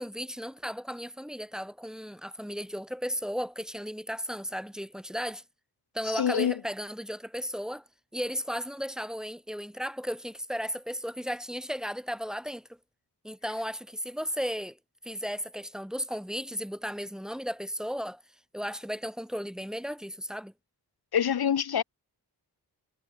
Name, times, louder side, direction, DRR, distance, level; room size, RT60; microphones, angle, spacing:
voice 1, 0.0-5.4 5.9-7.9 8.1-12.8 13.2-14.8 15.0-18.2 18.5-20.5, equal, ahead, 1.9 m, -35 dB
voice 2, 6.2-6.5 21.1-21.8, left 8 dB, 65° left, 1.0 m, -25 dB
wide cardioid pair, 170°, 40 cm